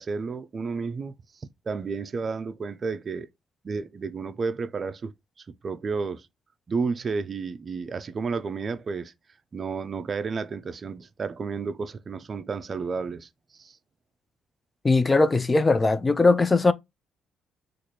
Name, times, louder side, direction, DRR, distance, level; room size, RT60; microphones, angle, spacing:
voice 1, 0.0-3.3 3.6-5.1 5.4-6.3 6.7-9.1 9.5-13.3 13.6-13.8, right 4 dB, 40° right, 0.4 m, -32 dB
voice 2, 14.8-16.7, left 3 dB, 25° left, 0.4 m, -20 dB
3.1 x 2.5 x 4.0 m
cardioid pair, 90°, 0 cm